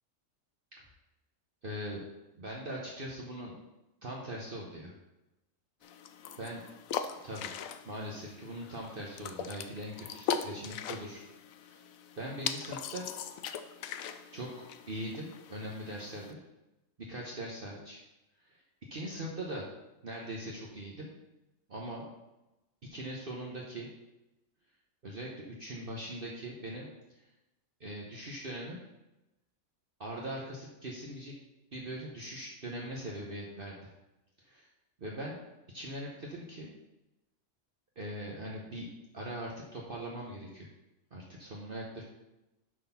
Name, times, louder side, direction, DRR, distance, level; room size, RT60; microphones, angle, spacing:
voice 1, 1.6-2.0 2.4-3.6 4.0-4.9 6.4-6.6 7.2-7.5 7.9-11.2 11.5-11.9 12.2-13.1 14.3-16.4 17.0-18.0 18.4-18.6 18.9-19.7 20.0-21.1 21.7-22.1 22.8-23.9 25.0-26.9 27.8-28.8 30.0-31.3 31.7-33.9 34.4-34.7 35.0-35.4 35.7-36.7 38.0-38.9 39.1-40.7 41.1-42.0, right 1 dB, 45° right, -3 dB, 1.1 m, -41 dB
sound 1, 5.8-16.3, left 8 dB, 80° left, 1.0 m, -40 dB
7.7 x 4.2 x 5.7 m, 0.96 s
omnidirectional pair, 1.4 m